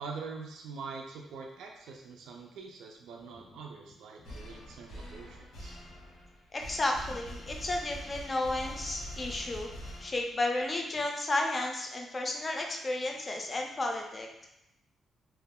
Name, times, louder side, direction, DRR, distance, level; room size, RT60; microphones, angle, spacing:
voice 1, 0.0-5.8, right 4 dB, 80° right, 1 dB, 0.3 m, -44 dB
sound 1, 4.2-10.6, equal, 90° left, 1.0 m, -44 dB
voice 2, 6.5-9.7 10.0-14.5, left 2 dB, 25° left, 1 dB, 0.4 m, -32 dB
2.4 x 2.2 x 3.4 m, 0.85 s
wide cardioid pair, 165°, 0 cm